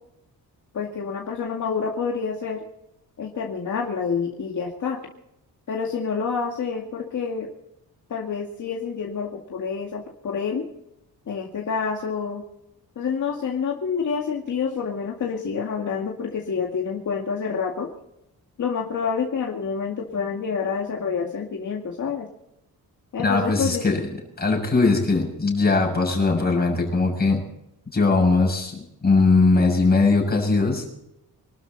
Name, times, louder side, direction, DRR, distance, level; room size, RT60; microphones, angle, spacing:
voice 1, 0.7-2.6 3.2-5.0 5.7-7.5 8.1-10.7 11.3-12.4 13.0-17.9 18.6-22.3 23.1-23.8 24.9-25.1, left 6 dB, 55° left, 0 dB, 2.2 m, -28 dB
voice 2, 23.2-24.1 24.4-27.5 27.9-30.9, left 3 dB, 25° left, 0 dB, 6.6 m, -20 dB
25.0 x 13.0 x 4.1 m, 0.84 s
wide cardioid pair, 135°, 36 cm